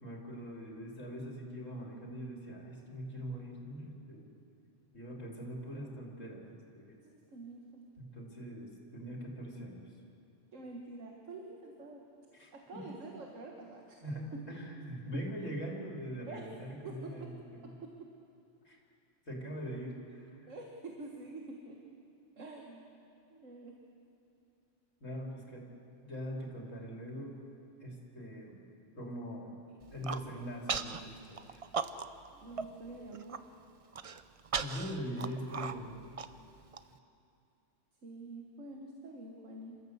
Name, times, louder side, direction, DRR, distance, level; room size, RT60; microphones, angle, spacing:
voice 1, 0.0-4.3 4.9-6.9 8.0-9.9 12.3-12.9 14.0-17.7 18.6-18.8 19.3-20.5 25.0-25.7 26.0-27.4 27.8-28.6 29.0-29.6 29.9-31.6 32.5-32.6 34.6-36.1, equal, 80° left, -1 dB, 3.6 m, -42 dB
voice 2, 7.0-7.9 10.5-12.0 12.5-14.0 14.3-14.4 16.3-16.4 16.8-17.3 17.6-18.1 20.5-21.8 22.4-22.9 23.3-23.8 32.3-33.5 38.0-39.8, right 2 dB, 75° right, 0 dB, 1.9 m, -47 dB
Human voice, 29.8-30.2 30.7-31.0 31.4-32.3 32.6-32.7 33.1-33.4 33.9-36.8, right 5 dB, 40° right, 0.5 m, -37 dB
27.0 x 14.0 x 8.1 m, 2.7 s
omnidirectional pair, 1.3 m